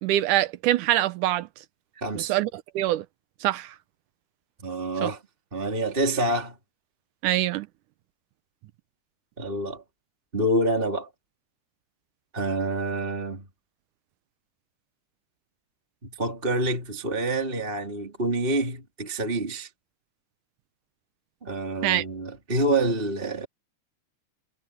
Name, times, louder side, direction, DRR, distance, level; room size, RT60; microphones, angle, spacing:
voice 1, 0.0-1.5 2.2-2.5 2.8-3.1 3.4-3.7 5.0-5.1 7.2-7.7 21.8-22.0, right 14 dB, 80° right, 2.2 m, -24 dB
voice 2, 1.9-2.3 4.6-5.2 5.5-6.6 9.4-9.8 10.3-11.1 12.3-13.4 16.0-19.7 21.4-23.5, right 1 dB, 15° right, 3.1 m, -27 dB
omnidirectional pair, 3.7 m